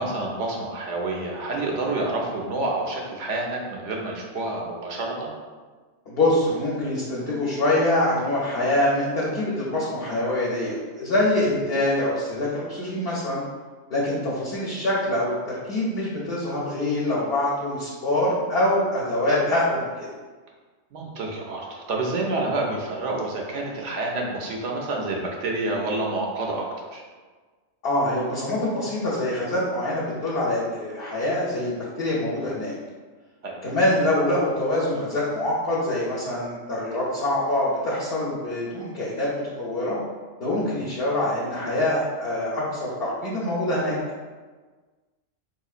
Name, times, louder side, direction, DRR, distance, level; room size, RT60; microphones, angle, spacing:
voice 1, 0.0-5.3 20.9-27.0 33.4-33.6, right 2 dB, 70° right, 0 dB, 0.9 m, -28 dB
voice 2, 6.1-13.4 13.9-20.1 27.8-32.7 33.6-39.3 39.6-40.0 40.4-43.9, left 1 dB, 55° left, -6 dB, 0.8 m, -25 dB
4.4 x 2.8 x 2.4 m, 1.4 s
omnidirectional pair, 1.3 m